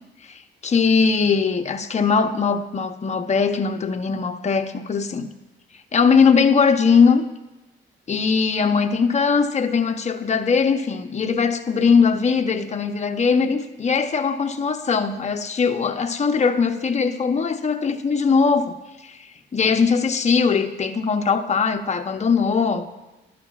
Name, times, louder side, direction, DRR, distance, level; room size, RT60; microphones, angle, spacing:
voice 1, 0.3-5.3 5.9-7.2 8.1-18.8 19.0-19.2 19.5-22.9, left 5 dB, 35° left, 6 dB, 0.8 m, -20 dB
12.0 x 12.0 x 2.4 m, 1.0 s
cardioid pair, 90°, 20 cm